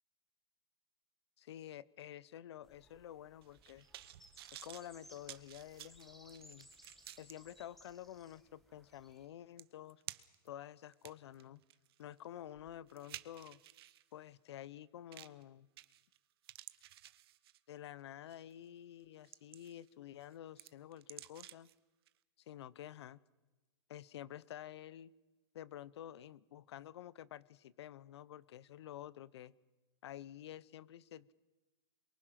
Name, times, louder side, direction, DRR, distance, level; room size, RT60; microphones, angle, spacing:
voice 1, 1.4-3.9 4.6-6.7 7.2-10.0 10.4-11.6 12.0-13.6 14.1-15.7 17.7-21.7 22.5-23.2 23.9-25.1 25.5-29.5 30.0-31.3, left 11 dB, 85° left, 21 dB, 0.9 m, -50 dB
sound 1, 2.6-9.3, equal, ahead, 1.6 m, -63 dB
sound 2, 3.4-7.3 7.9-8.0 9.2-9.3 9.6-10.5 10.9-14.0 15.1-15.4 15.8-16.2 16.4-17.8 18.3-18.5 19.0-19.9 20.2-21.7 22.1-22.2, right 14 dB, 65° right, 1.0 m, -53 dB
28.0 x 23.5 x 5.8 m, 1.2 s
supercardioid pair, 155°, 14 cm